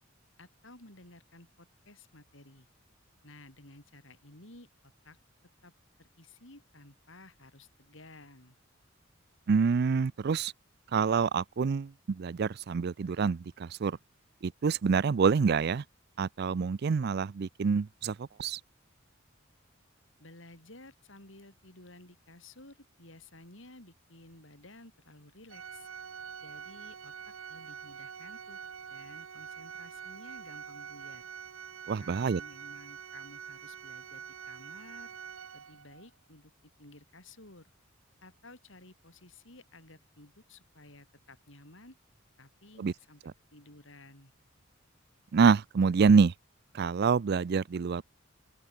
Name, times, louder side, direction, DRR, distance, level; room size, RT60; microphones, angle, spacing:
voice 1, 0.4-2.7 3.2-4.7 5.0-5.2 5.6-5.7 6.0-8.6 20.2-25.9 26.4-28.6 28.9-31.3 32.0-35.1 35.5-36.5 36.8-37.7 38.2-42.0 42.4-43.2 43.5-44.3, left 2 dB, 65° left, 7.1 m, -54 dB
voice 2, 9.5-10.5 10.9-14.0 14.4-15.8 16.2-18.6 31.9-32.4 42.8-42.9 45.3-46.3 46.7-48.0, right 5 dB, 55° right, 0.4 m, -26 dB
Organ, 25.5-36.1, right 7 dB, 90° right, 1.0 m, -45 dB
open air
head